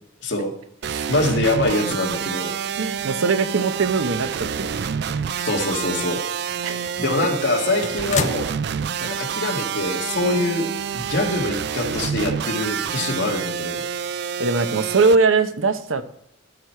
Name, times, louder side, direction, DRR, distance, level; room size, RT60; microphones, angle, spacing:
sound 1, 0.8-15.2, right 7 dB, 55° right, 0.4 m, -28 dB
voice 1, 1.1-2.5 5.5-6.2 7.0-8.5 9.0-10.7 10.9-13.8, left 2 dB, 60° left, 1 dB, 1.9 m, -24 dB
voice 2, 2.8-4.7 6.6-6.9 14.4-16.0, right 4 dB, 85° right, 10 dB, 0.9 m, -21 dB
sound 2, 4.8-6.0 6.4-6.5 7.0-9.2 9.5-9.6 10.8-10.9, left 5 dB, 35° left, 0.5 m, -33 dB
12.5 x 4.7 x 5.7 m, 0.75 s
head